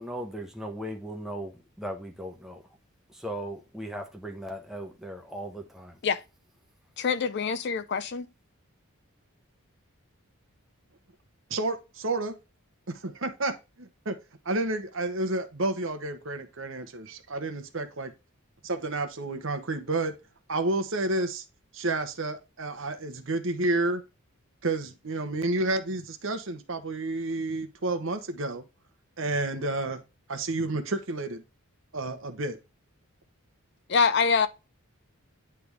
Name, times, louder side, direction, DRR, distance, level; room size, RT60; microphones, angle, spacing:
voice 1, 0.0-2.6 3.1-6.0, right 1 dB, ahead, 0.9 m, -38 dB
voice 2, 7.0-8.3 33.9-34.5, left 5 dB, 50° left, 0.4 m, -25 dB
voice 3, 11.5-12.4 12.9-14.2 14.4-18.1 18.6-20.1 20.5-21.4 21.7-24.0 24.6-28.6 29.2-30.0 30.3-31.4 31.9-32.6, right 2 dB, 60° right, 0.9 m, -30 dB
9.6 x 3.4 x 3.5 m
head